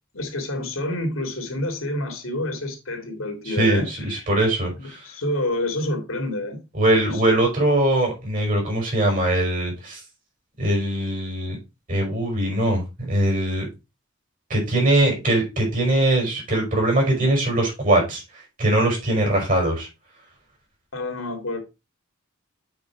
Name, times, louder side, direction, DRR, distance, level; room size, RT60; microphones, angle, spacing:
voice 1, 0.1-4.3 4.8-6.6 7.0-7.2 20.9-21.6, left 1 dB, 80° left, 2.3 m, -28 dB
voice 2, 3.5-5.0 6.7-10.0 10.6-11.6 11.9-13.7 14.5-18.2 18.6-19.9, right 1 dB, 40° right, 5.2 m, -21 dB
7.9 x 4.7 x 4.5 m
head